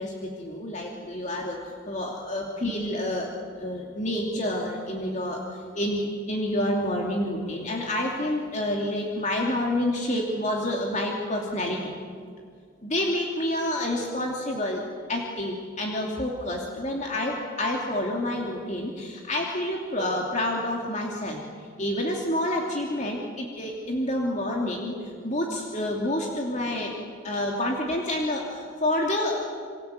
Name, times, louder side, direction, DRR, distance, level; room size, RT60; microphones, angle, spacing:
voice 1, 0.0-11.8 12.8-26.9 27.2-29.5, left 1 dB, 35° left, -1 dB, 2.9 m, -28 dB
28.5 x 24.0 x 8.4 m, 2.1 s
head